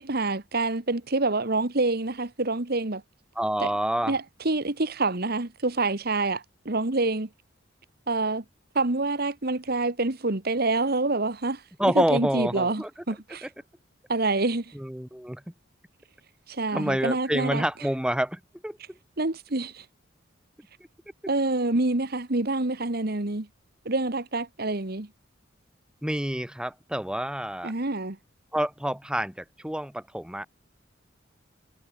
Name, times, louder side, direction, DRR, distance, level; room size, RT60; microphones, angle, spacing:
voice 1, 0.0-3.0 3.6-3.7 4.1-7.3 8.1-8.4 8.7-11.6 11.9-13.5 14.1-14.7 16.5-17.6 19.2-19.8 21.3-23.5 23.8-25.1 27.6-28.2, right 2 dB, 55° right, 1.7 m, -27 dB
voice 2, 3.3-4.1 11.8-12.9 13.4-13.5 14.7-15.5 16.7-19.0 26.0-27.7 28.5-30.5, right 1 dB, 5° right, 1.3 m, -28 dB
head